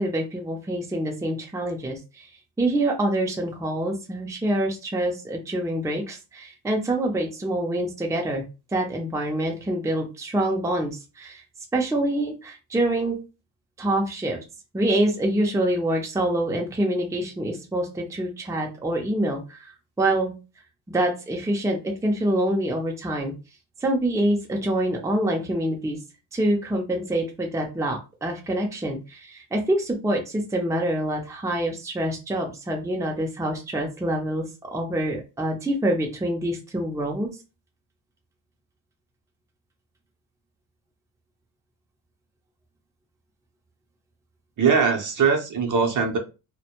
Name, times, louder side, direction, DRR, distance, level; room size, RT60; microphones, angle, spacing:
voice 1, 0.0-2.3 2.6-8.4 8.7-10.9 11.2-11.4 11.7-13.2 13.8-14.4 14.7-19.7 20.0-20.3 20.9-23.3 23.8-26.0 26.3-37.3, right 1 dB, 5° right, 0.6 m, -26 dB
voice 2, 44.6-46.2, right 5 dB, 45° right, 0.7 m, -21 dB
2.2 x 2.1 x 2.8 m
cardioid pair, 80°, 45 cm